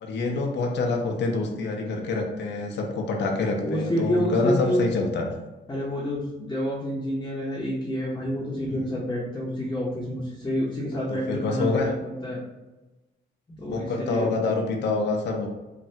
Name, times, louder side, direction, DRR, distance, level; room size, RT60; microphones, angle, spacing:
voice 1, 0.0-5.3 8.7-8.9 10.9-11.8 13.7-15.5, left 3 dB, 60° left, 1 dB, 0.6 m, -26 dB
voice 2, 3.6-4.9 5.7-12.4 13.6-14.4, equal, 20° left, -6 dB, 0.7 m, -28 dB
3.2 x 2.3 x 2.7 m, 1.1 s
cardioid pair, 85°, 21 cm